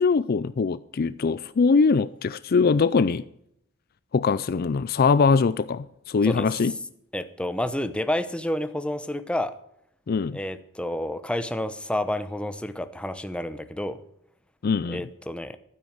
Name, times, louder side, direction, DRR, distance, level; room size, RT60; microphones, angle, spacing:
voice 1, 0.0-3.2 4.1-6.7 10.1-10.4 14.6-15.0, left 4 dB, 45° left, 0.4 m, -22 dB
voice 2, 7.1-9.5 10.3-14.0 14.9-15.6, left 1 dB, 5° left, 0.8 m, -29 dB
12.5 x 9.5 x 6.5 m
head